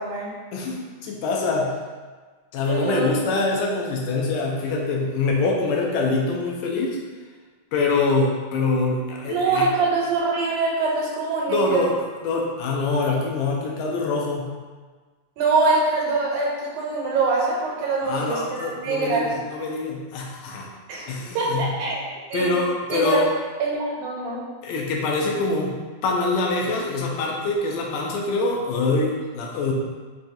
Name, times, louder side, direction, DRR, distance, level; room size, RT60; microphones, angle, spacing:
voice 1, 0.0-0.3 2.7-3.1 9.3-11.9 15.4-19.4 20.9-21.1 21.4-22.0 22.3-22.6 22.9-23.2 23.6-24.4, right 3 dB, 85° right, -3 dB, 2.1 m, -24 dB
voice 2, 0.5-1.8 2.5-7.0 7.7-9.7 11.5-11.9 12.2-14.5 18.0-20.7 21.1-21.7 22.3-23.3 24.6-29.7, left 3 dB, 80° left, -1 dB, 1.8 m, -24 dB
5.5 x 2.3 x 2.6 m, 1.4 s
omnidirectional pair, 3.5 m